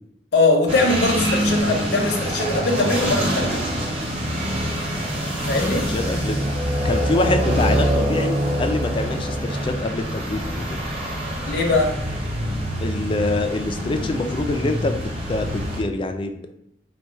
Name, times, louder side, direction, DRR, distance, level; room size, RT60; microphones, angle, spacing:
voice 1, 0.3-3.6 5.5-5.9 11.4-11.9, left 2 dB, 60° left, 0 dB, 0.7 m, -21 dB
sound 1, 0.7-15.8, equal, 35° right, 1.0 m, -25 dB
voice 2, 5.9-6.4 6.8-10.8 12.8-16.5, left 2 dB, 30° left, 6 dB, 0.3 m, -25 dB
4.2 x 2.2 x 4.4 m, 0.78 s
head